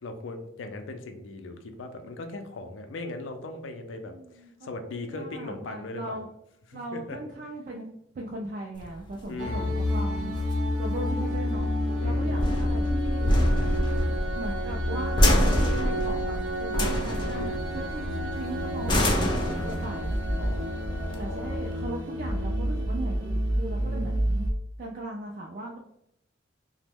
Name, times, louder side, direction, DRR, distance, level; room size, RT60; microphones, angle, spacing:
voice 1, 0.0-6.2 6.7-7.2 9.3-9.8 12.0-12.5 20.4-21.7 23.8-24.2, left 2 dB, 90° left, 6 dB, 0.4 m, -39 dB
voice 2, 4.1-4.5 4.8-6.3 6.7-7.9 8.1-10.3 10.8-11.7 12.0-13.3 14.4-19.2 19.6-20.1 21.2-24.5 24.8-25.8, right 1 dB, 50° right, -1 dB, 0.3 m, -38 dB
sound 1, 8.8-21.8, equal, 25° left, 0.5 m, -27 dB
sound 2, 9.4-24.5, equal, 70° right, 0.7 m, -29 dB
2.9 x 2.0 x 3.4 m, 0.76 s
head